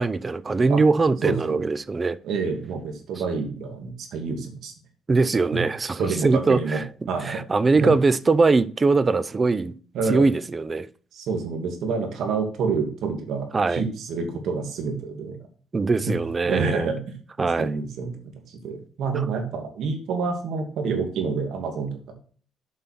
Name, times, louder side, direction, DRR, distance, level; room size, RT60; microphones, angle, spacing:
voice 1, 0.0-2.2 5.1-6.8 7.2-9.7 10.1-10.9 13.5-13.8 15.7-16.9 17.4-17.8 19.2-19.3, right 3 dB, 25° right, 0.6 m, -21 dB
voice 2, 1.2-1.6 2.2-4.7 5.5-5.6 6.0-6.8 7.1-7.4 7.8-7.9 9.9-10.3 11.1-15.4 16.0-16.1 16.5-17.1 17.6-22.1, right 5 dB, 70° right, 2.6 m, -28 dB
7.6 x 5.6 x 5.8 m
cardioid pair, 110°, 0 cm